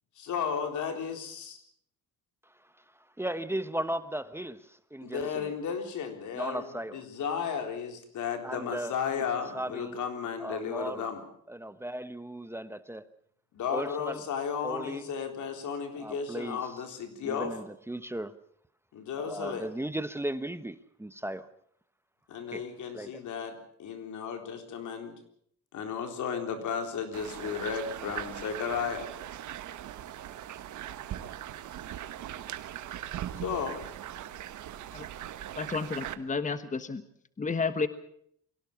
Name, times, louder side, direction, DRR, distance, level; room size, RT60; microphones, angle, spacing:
voice 1, 0.2-1.6 5.0-6.7 6.9-11.2 13.5-17.5 18.9-19.7 22.3-25.1 25.7-29.1 33.4-33.8, left 7 dB, 75° left, 6 dB, 3.9 m, -34 dB
voice 2, 2.4-5.5 6.3-7.0 8.4-10.0 10.4-11.1 11.5-13.1 13.7-14.2 14.6-15.1 16.0-16.8 17.2-18.4 19.2-21.5 22.5-22.6 22.9-23.2, right 1 dB, 10° right, 12 dB, 1.1 m, -37 dB
sound 1, 27.1-36.2, right 11 dB, 75° right, 1.4 m, -40 dB
voice 3, 35.6-37.0 37.4-37.9, left 4 dB, 25° left, 11 dB, 1.3 m, -31 dB
23.5 x 17.0 x 7.1 m, 0.67 s
cardioid pair, 90°, 30 cm